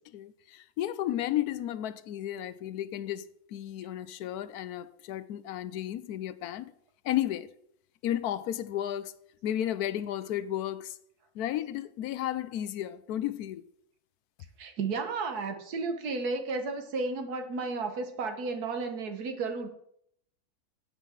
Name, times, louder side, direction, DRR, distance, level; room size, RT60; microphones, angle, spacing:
voice 1, 0.1-6.7 7.0-7.5 8.0-9.1 9.4-11.0 11.3-13.6, left 12 dB, 90° left, 1.1 m, -33 dB
voice 2, 14.6-19.7, right 4 dB, 90° right, 1.7 m, -33 dB
8.4 x 7.2 x 7.3 m
omnidirectional pair, 1.6 m